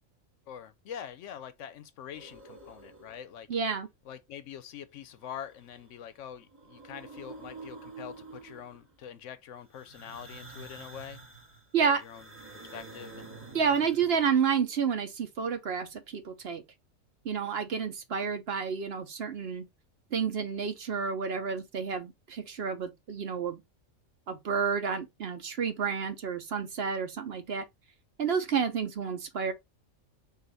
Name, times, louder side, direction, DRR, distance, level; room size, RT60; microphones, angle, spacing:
voice 1, 0.5-3.5 4.1-11.2 11.8-12.3 12.7-13.3, left 9 dB, 70° left, 0.9 m, -44 dB
sound 1, 2.1-3.4 5.1-6.0 6.4-8.9 9.7-14.6, right 3 dB, 10° right, 1.3 m, -48 dB
voice 2, 3.5-3.9 11.7-12.0 13.5-16.6 17.2-19.7 20.1-23.6 24.3-27.6 28.2-29.5, right 6 dB, 55° right, 0.9 m, -30 dB
4.9 x 2.5 x 3.9 m
omnidirectional pair, 1.4 m